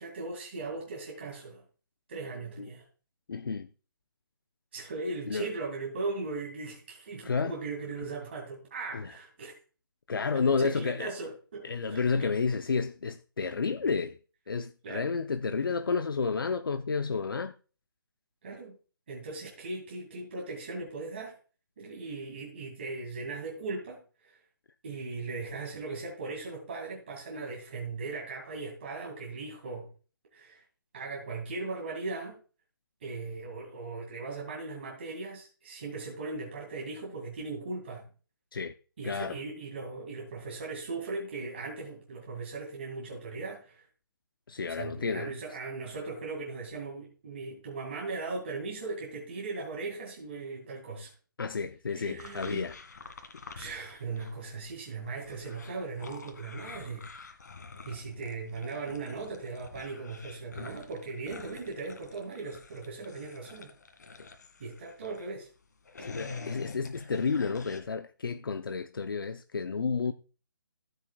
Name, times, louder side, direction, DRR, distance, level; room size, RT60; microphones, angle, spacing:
voice 1, 0.0-1.6 2.1-2.8 4.7-9.6 10.4-12.3 14.8-15.1 18.4-18.8 19.1-21.4 21.8-24.0 24.2-24.4 24.8-29.9 30.3-30.6 30.9-32.4 33.0-38.1 39.0-43.9 44.7-51.1 51.9-52.7 53.6-57.1 57.9-63.7 64.6-65.5, right 3 dB, 30° right, 2.2 m, -38 dB
voice 2, 3.3-3.7 5.3-5.5 7.2-7.5 8.9-9.1 10.1-11.1 11.6-14.2 14.5-17.5 38.5-38.7 39.0-39.4 44.5-45.3 51.4-52.8 66.0-70.1, left 5 dB, 70° left, 0.7 m, -31 dB
sound 1, 52.2-54.4 54.6-65.3 65.7-67.8, left 4 dB, 50° left, 2.0 m, -47 dB
14.0 x 8.0 x 2.3 m
hypercardioid pair, 180°, 12 cm